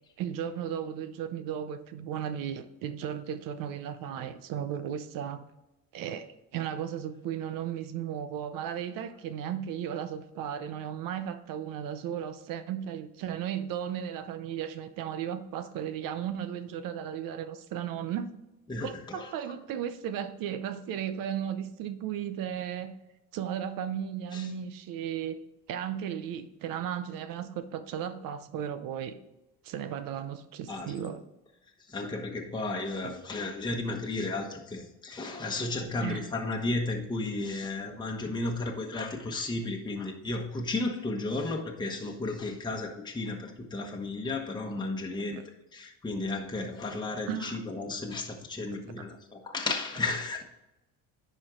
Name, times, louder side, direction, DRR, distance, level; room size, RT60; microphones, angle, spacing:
voice 1, 0.2-5.4 5.9-6.3 6.5-18.3 18.8-23.0 23.3-25.4 25.7-29.2 29.6-31.2 33.0-33.1 36.0-36.3 47.3-47.6 49.0-49.1, right 9 dB, 70° right, 11 dB, 0.8 m, -35 dB
voice 2, 18.7-19.3 24.3-24.5 30.7-30.9 31.9-45.4 45.7-50.4, left 2 dB, 10° left, 0 dB, 1.1 m, -33 dB
10.5 x 4.6 x 3.7 m, 0.94 s
cardioid pair, 100°, 35 cm